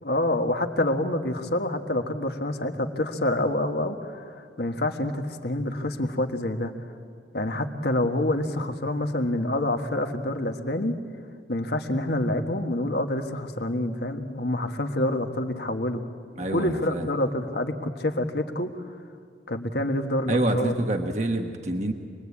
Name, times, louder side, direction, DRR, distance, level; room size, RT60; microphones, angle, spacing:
voice 1, 0.0-6.7 7.3-11.0 11.5-16.0 16.5-18.7 19.5-20.8, left 1 dB, 65° left, 5 dB, 1.6 m, -27 dB
voice 2, 16.4-17.1 20.3-21.9, right 1 dB, 40° right, 4 dB, 1.2 m, -26 dB
26.5 x 21.0 x 8.5 m, 2.2 s
head